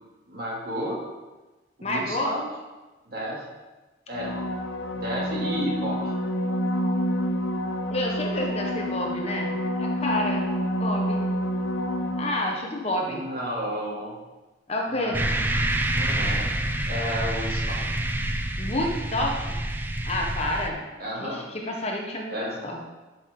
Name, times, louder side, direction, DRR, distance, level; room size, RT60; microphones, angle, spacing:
voice 1, 0.3-1.0 1.8-2.4 3.1-3.4 4.1-4.4 4.9-6.1 13.0-14.2 14.9-15.4 15.9-16.5 16.9-17.8 21.0-21.4 22.3-22.6, equal, 50° right, -4 dB, 2.7 m, -32 dB
voice 2, 1.8-2.3 7.9-10.4 10.8-11.2 12.2-13.2 14.7-15.2 18.6-19.6 20.0-20.8 21.2-22.9, left 1 dB, 35° left, 0 dB, 1.2 m, -29 dB
sound 1, 4.1-12.7 18.1-18.2, equal, 90° left, 1.0 m, -28 dB
sound 2, 15.1-20.7, right 1 dB, 10° right, 0.5 m, -27 dB
11.5 x 6.8 x 3.8 m, 1.2 s
head